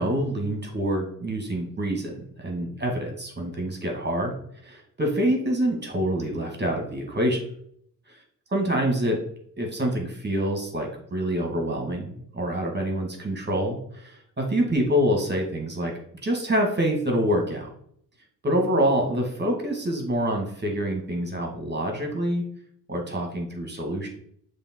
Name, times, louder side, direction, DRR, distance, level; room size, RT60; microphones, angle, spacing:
voice 1, 0.0-2.1 2.4-4.3 4.6-7.4 8.5-9.2 9.6-15.9 16.2-17.7 18.4-22.4 22.9-24.1, equal, 25° right, 2 dB, 2.2 m, -26 dB
7.1 x 3.5 x 4.6 m, 0.67 s
cardioid pair, 75°, 40 cm